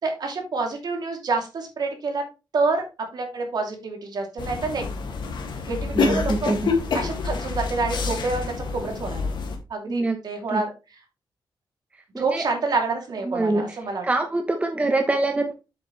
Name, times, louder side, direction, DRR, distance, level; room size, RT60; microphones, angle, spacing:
voice 1, 0.0-2.2 2.5-2.8 3.1-4.8 5.6-6.5 6.9-8.4 8.7-9.2 9.7-10.7 12.2-14.0, right 3 dB, 55° right, 3 dB, 2.7 m, -27 dB
sound 1, 4.4-9.6, left 4 dB, 70° left, 1.9 m, -27 dB
voice 2, 5.7-6.7 9.9-10.2 10.5-10.6 12.1-12.4 13.3-13.8 14.0-15.5, right 2 dB, 15° right, 5 dB, 0.9 m, -25 dB
7.9 x 7.3 x 3.1 m, 0.29 s
wide cardioid pair, 155°, 8 cm